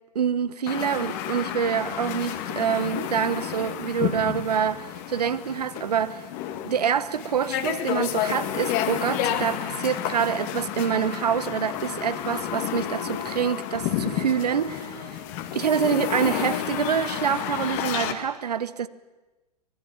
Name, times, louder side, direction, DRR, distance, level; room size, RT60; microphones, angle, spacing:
voice 1, 0.1-6.2 6.6-15.1 15.5-18.9, right 8 dB, 75° right, 1.0 m, -26 dB
sound 1, 0.7-18.1, left 10 dB, 40° left, 1.9 m, -30 dB
25.0 x 19.0 x 7.2 m
figure-of-eight pair, 110°, 21 cm